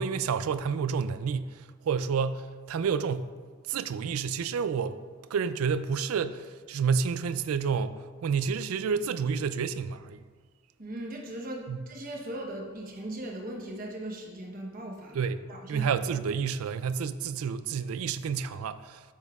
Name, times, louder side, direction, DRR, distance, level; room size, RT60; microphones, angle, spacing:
voice 1, 0.0-3.3 3.7-5.0 5.3-10.2 11.7-11.8 15.1-15.4 15.7-19.0, right 6 dB, 90° right, 0.4 m, -29 dB
voice 2, 10.8-15.9, right 1 dB, 40° right, 1.0 m, -39 dB
9.4 x 7.0 x 2.4 m
head